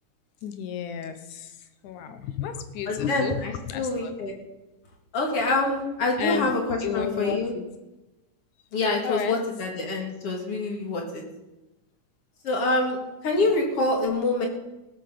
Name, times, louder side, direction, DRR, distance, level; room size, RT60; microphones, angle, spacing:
voice 1, 0.4-1.6 1.8-4.1 6.2-6.5 6.8-7.6 9.0-9.4 13.4-13.6, left 8 dB, 75° left, 9 dB, 2.4 m, -32 dB
voice 2, 2.9-4.3 5.1-7.5 8.7-11.2 12.4-13.0 13.2-14.5, left 2 dB, 50° left, 1 dB, 2.7 m, -26 dB
17.0 x 7.9 x 6.8 m, 1.0 s
omnidirectional pair, 3.7 m